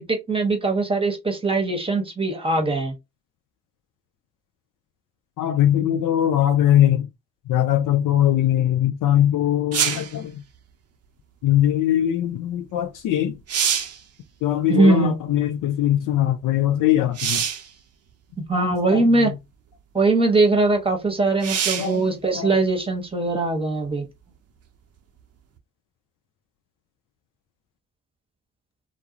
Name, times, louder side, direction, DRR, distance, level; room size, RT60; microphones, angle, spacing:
voice 1, 0.0-2.9 14.7-15.1 18.5-19.3 19.9-24.0, right 3 dB, 15° right, 1.0 m, -21 dB
voice 2, 5.4-7.1 7.5-10.4 11.4-13.4 14.4-17.4 18.5-19.4 21.8-22.1 22.3-22.5, left 11 dB, 55° left, 0.4 m, -21 dB
sound 1, 9.7-10.2 12.8-12.9 13.3-14.0 17.1-17.7 18.7-18.8 21.4-22.0 25.6-25.7, right 8 dB, 40° right, 0.5 m, -24 dB
2.3 x 2.0 x 2.9 m
hypercardioid pair, 45°, 40 cm